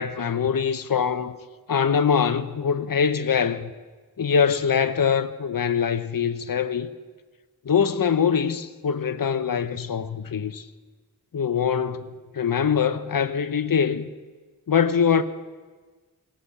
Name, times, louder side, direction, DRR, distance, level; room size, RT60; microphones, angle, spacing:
voice 1, 0.0-1.4 1.7-3.7 4.2-6.9 7.6-10.6 11.3-14.1 14.7-15.2, left 7 dB, 70° left, 0.7 m, -23 dB
17.5 x 7.1 x 8.3 m
wide cardioid pair, 65°, 36 cm